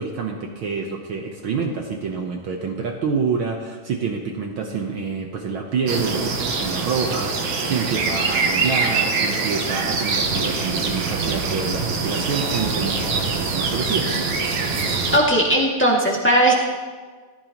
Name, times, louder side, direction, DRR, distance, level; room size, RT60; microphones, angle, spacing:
voice 1, 0.0-14.2, right 5 dB, 80° right, 2 dB, 1.1 m, -27 dB
sound 1, 5.9-15.2, right 4 dB, 65° right, 2.6 m, -24 dB
voice 2, 15.1-16.5, right 1 dB, 5° left, -3 dB, 1.4 m, -17 dB
18.5 x 14.5 x 3.0 m, 1.5 s
omnidirectional pair, 3.7 m